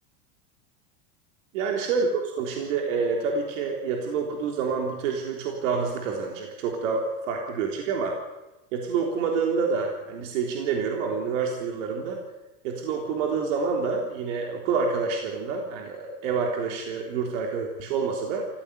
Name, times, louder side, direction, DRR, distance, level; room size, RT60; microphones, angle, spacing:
voice 1, 1.5-2.1 2.4-8.2 8.7-12.2 12.6-18.5, right 5 dB, 55° right, 2 dB, 3.6 m, -27 dB
26.5 x 15.5 x 8.3 m, 1.0 s
supercardioid pair, 170°, 45 cm